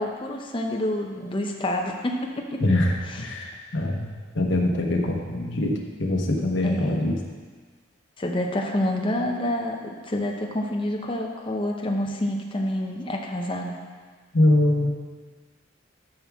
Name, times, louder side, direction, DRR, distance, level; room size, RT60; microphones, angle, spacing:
voice 1, 0.0-2.6 3.1-3.3 6.6-7.1 8.2-9.8 10.1-13.7, left 1 dB, 25° left, 1 dB, 0.8 m, -28 dB
voice 2, 2.6-4.1 4.3-5.7 6.0-7.2 14.3-14.9, left 1 dB, 70° left, 1 dB, 1.2 m, -23 dB
12.5 x 6.0 x 3.6 m, 1.5 s
head